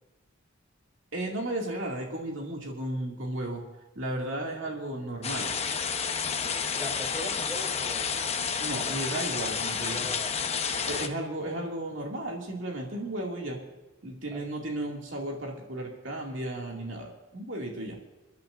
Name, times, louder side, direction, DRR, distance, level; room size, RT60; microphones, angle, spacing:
voice 1, 1.1-3.6 4.0-5.5 8.6-10.1 10.9-13.6 14.0-18.0, right 1 dB, 65° right, -1 dB, 2.4 m, -34 dB
sound 1, 5.2-11.1, left 6 dB, 30° left, 0.9 m, -30 dB
voice 2, 6.7-8.1 9.9-11.0 14.3-14.5, left 1 dB, 10° right, 0 dB, 3.6 m, -41 dB
29.0 x 10.5 x 2.6 m, 1.1 s
head